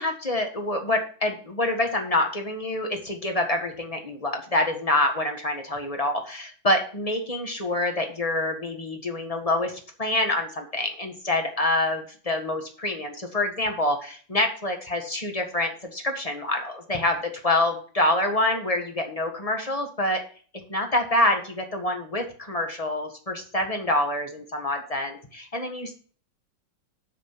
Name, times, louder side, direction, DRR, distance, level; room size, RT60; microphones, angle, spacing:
voice 1, 0.0-20.2 20.7-25.9, left 1 dB, 20° left, 4 dB, 1.3 m, -26 dB
7.4 x 6.2 x 6.0 m, 0.43 s
omnidirectional pair, 2.2 m